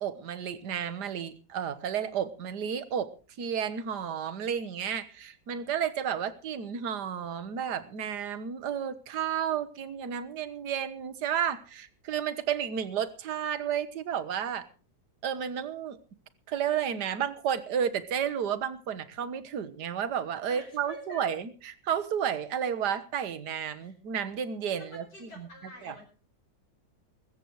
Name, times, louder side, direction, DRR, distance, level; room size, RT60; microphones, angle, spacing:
voice 1, 0.0-3.1 3.4-14.7 15.2-16.0 16.5-21.5 21.8-25.5 25.8-26.0, right 8 dB, 70° right, 1.8 m, -32 dB
voice 2, 20.5-21.3 23.8-24.0 24.7-26.1, left 1 dB, 80° left, 5.8 m, -47 dB
22.5 x 14.0 x 3.1 m
omnidirectional pair, 1.8 m